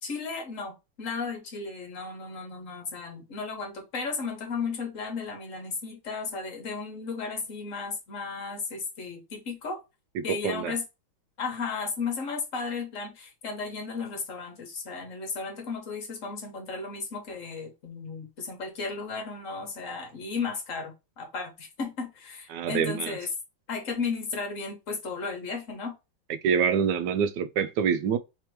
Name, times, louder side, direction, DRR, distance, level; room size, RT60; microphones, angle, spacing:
voice 1, 0.0-9.8 10.2-10.8 11.4-23.3 23.7-25.9, left 4 dB, 45° left, 1.3 m, -34 dB
voice 2, 10.2-10.7 22.5-23.2 26.4-28.2, right 7 dB, 75° right, 1.1 m, -26 dB
3.4 x 2.9 x 4.6 m
omnidirectional pair, 2.2 m